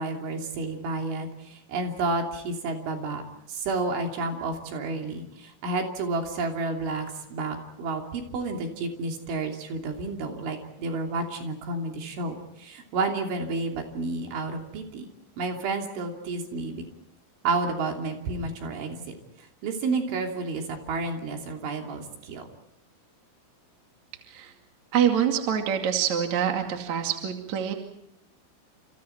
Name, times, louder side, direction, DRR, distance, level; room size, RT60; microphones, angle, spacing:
voice 1, 0.0-3.2 3.5-15.1 15.4-16.8 17.4-22.5, right 3 dB, 65° right, 2 dB, 5.3 m, -31 dB
voice 2, 24.9-27.7, right 9 dB, 45° right, 3 dB, 2.9 m, -25 dB
29.5 x 29.0 x 4.5 m, 0.80 s
omnidirectional pair, 5.9 m